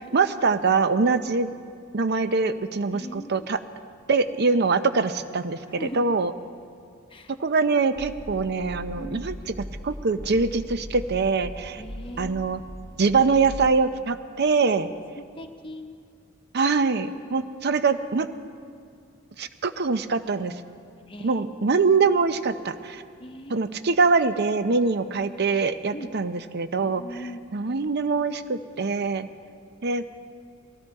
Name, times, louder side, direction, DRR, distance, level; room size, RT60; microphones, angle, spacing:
voice 1, 0.1-1.5 1.9-3.6 4.1-6.3 7.3-9.3 9.8-11.8 12.2-12.6 13.0-14.9 16.5-18.3 19.4-20.5 21.2-23.0 23.5-27.0 27.5-29.3 29.8-30.0, right 4 dB, 55° right, 11 dB, 0.7 m, -23 dB
voice 2, 2.9-3.5 5.7-6.1 7.1-7.3 9.0-9.3 11.8-12.7 14.7-14.8 15.2-16.0 21.1-21.8 23.2-23.7 25.9-26.2 26.8-27.4, equal, 25° left, 5 dB, 1.0 m, -40 dB
sound 1, 8.0-13.7, equal, 15° right, 0.9 m, -39 dB
20.0 x 15.0 x 4.8 m, 2.3 s
head